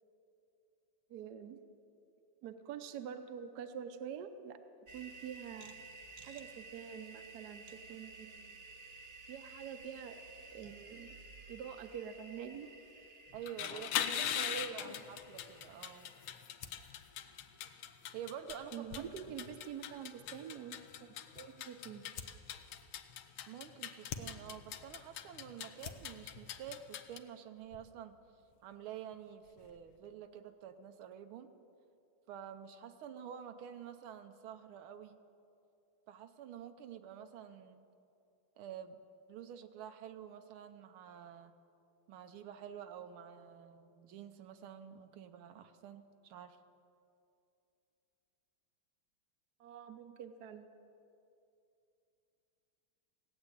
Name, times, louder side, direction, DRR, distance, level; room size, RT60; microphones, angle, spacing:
voice 1, 1.1-1.6 2.4-4.6 4.9-5.8 6.2-8.6 9.3-10.2 10.5-11.1 11.5-12.7 14.2-15.0 18.7-22.0 49.6-50.7, right 8 dB, 60° right, 8 dB, 1.2 m, -46 dB
sound 1, 4.9-16.4, right 3 dB, 35° right, 1.1 m, -54 dB
voice 2, 13.3-14.2 14.7-16.1 18.1-18.9 23.5-28.2 28.6-31.5 32.3-35.2 36.1-37.8 38.6-39.0 39.3-41.5 42.1-46.6, right 9 dB, 80° right, 8 dB, 1.6 m, -49 dB
sound 2, 13.4-27.2, left 10 dB, 85° left, 1.6 m, -42 dB
sound 3, 16.5-30.1, left 6 dB, 65° left, 1.3 m, -56 dB
16.5 x 8.0 x 9.7 m, 2.6 s
omnidirectional pair, 2.3 m